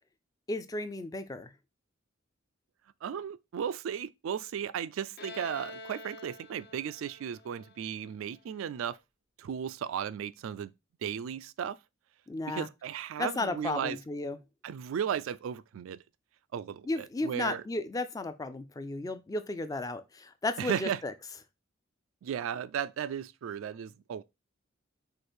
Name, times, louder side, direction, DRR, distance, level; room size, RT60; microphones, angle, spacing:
voice 1, 0.5-1.5 12.3-12.7 13.2-14.4 16.9-21.1, left 2 dB, 20° left, 0.4 m, -34 dB
voice 2, 3.0-9.0 9.4-10.7 11.0-11.8 12.5-14.0 14.6-16.0 16.5-17.6 20.6-21.0 22.2-24.2, right 8 dB, 80° right, 0.3 m, -35 dB
Bowed string instrument, 5.2-8.7, left 3 dB, 55° left, 0.8 m, -47 dB
4.9 x 2.5 x 4.3 m
head